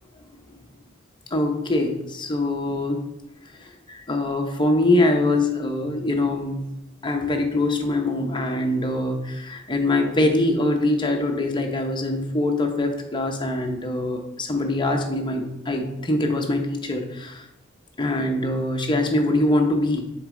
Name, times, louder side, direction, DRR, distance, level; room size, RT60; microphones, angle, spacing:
voice 1, 1.3-3.0 3.9-6.6 7.0-17.4 18.0-20.0, left 1 dB, 25° left, 3 dB, 0.7 m, -23 dB
6.4 x 3.9 x 3.7 m, 0.89 s
head